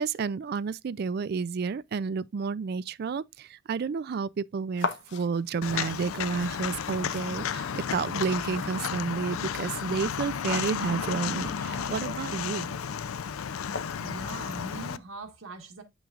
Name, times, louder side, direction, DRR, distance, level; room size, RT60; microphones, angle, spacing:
voice 1, 0.0-12.7, right 5 dB, 50° right, 0.3 m, -31 dB
sound 1, 4.8-14.3, left 4 dB, 60° left, 0.9 m, -42 dB
Walk footsteps, 5.6-15.0, left 7 dB, 85° left, 0.5 m, -33 dB
voice 2, 14.0-15.8, right 3 dB, 90° right, 1.5 m, -41 dB
8.5 x 6.1 x 2.4 m
head